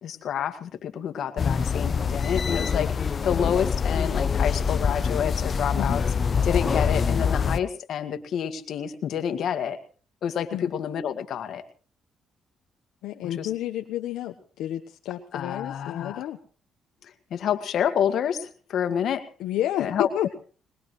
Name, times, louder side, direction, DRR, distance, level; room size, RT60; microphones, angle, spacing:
voice 1, 0.0-6.0 6.4-9.8 10.2-11.6 13.2-13.5 15.3-16.2 17.3-19.2 19.8-20.1, left 8 dB, 70° left, 7 dB, 2.0 m, -28 dB
sound 1, 1.4-7.6, left 6 dB, 40° left, 0.8 m, -25 dB
voice 2, 13.0-16.4 19.4-20.3, left 12 dB, 90° left, 3 dB, 1.2 m, -30 dB
21.5 x 21.0 x 3.2 m, 0.38 s
cardioid pair, 90°, 0 cm